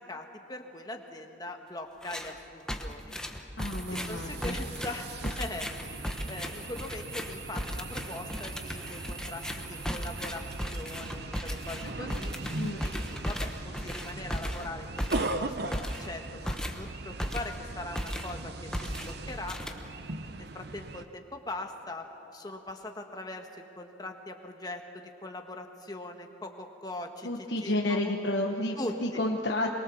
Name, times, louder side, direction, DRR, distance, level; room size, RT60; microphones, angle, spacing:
voice 1, 0.0-3.1 3.9-6.0 6.3-10.4 10.7-12.3 12.8-19.6 20.4-22.0 22.3-28.2 28.8-29.2, left 2 dB, 20° left, 4 dB, 1.4 m, -41 dB
sound 1, 2.0-2.4 2.7-17.7 18.0-18.4 18.7-20.1, equal, 5° left, 1.1 m, -36 dB
voice 2, 3.6-4.6 5.2-5.3 12.5-12.8 27.2-29.8, left 1 dB, 60° left, 0 dB, 1.2 m, -31 dB
sound 2, 3.6-10.8, right 4 dB, 85° right, 6.9 m, -48 dB
sound 3, 3.9-21.1, right 2 dB, 55° right, 0.8 m, -40 dB
23.0 x 22.5 x 7.1 m, 2.8 s
head